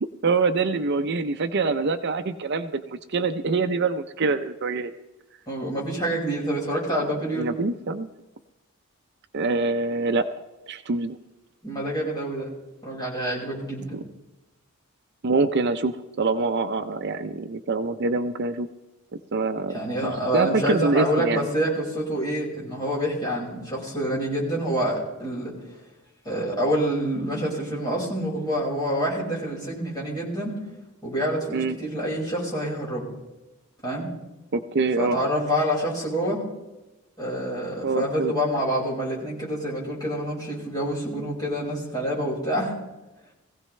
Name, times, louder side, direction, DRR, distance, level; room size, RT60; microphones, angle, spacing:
voice 1, 0.2-4.9 7.3-8.1 9.3-10.3 10.7-11.2 13.9-14.0 15.2-18.7 19.3-19.8 20.0-21.5 31.5-31.8 34.5-35.2 37.8-38.3, right 3 dB, 50° right, 9 dB, 0.5 m, -25 dB
voice 2, 5.5-7.5 11.6-12.5 12.8-14.0 19.7-25.6 26.3-30.6 31.0-33.1 33.8-34.1 35.0-36.4 37.2-42.7, equal, 20° left, -5 dB, 5.2 m, -27 dB
21.0 x 16.0 x 3.2 m, 1.0 s
head